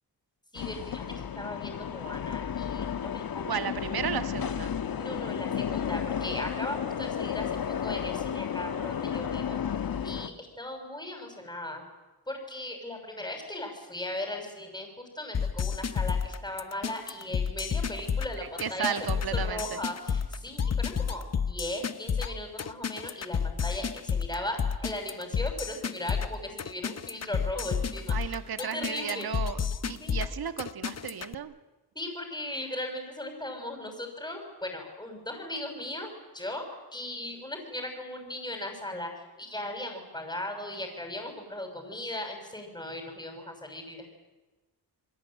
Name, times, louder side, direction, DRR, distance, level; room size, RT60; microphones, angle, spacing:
sound 1, 0.5-10.3, left 8 dB, 55° left, 1.5 m, -33 dB
voice 1, 0.5-3.7 5.0-9.6 10.0-11.8 12.3-18.9 19.3-29.3 30.0-30.2 31.9-36.7 36.9-44.2, left 1 dB, 10° left, 2 dB, 6.4 m, -38 dB
voice 2, 3.5-4.7 18.6-19.8 28.1-31.5, right 8 dB, 60° right, 10 dB, 1.6 m, -34 dB
sound 2, 15.3-31.3, left 6 dB, 40° left, 1.0 m, -31 dB
29.0 x 22.0 x 8.9 m, 1.2 s
cardioid pair, 100°, 41 cm